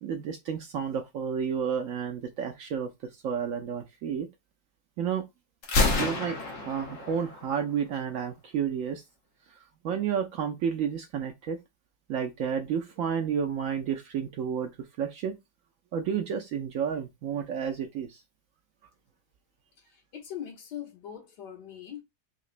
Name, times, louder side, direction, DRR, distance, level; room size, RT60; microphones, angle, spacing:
voice 1, 0.0-4.3 5.0-5.2 6.0-9.0 9.5-11.6 12.1-14.7 15.0-15.4 15.9-18.2, right 7 dB, 70° right, 0.8 m, -31 dB
Gunshot gunfire, 5.6-7.6, left 3 dB, 55° left, 1.2 m, -28 dB
voice 2, 19.9-22.0, left 10 dB, 85° left, 1.7 m, -41 dB
4.8 x 2.1 x 2.4 m
omnidirectional pair, 1.7 m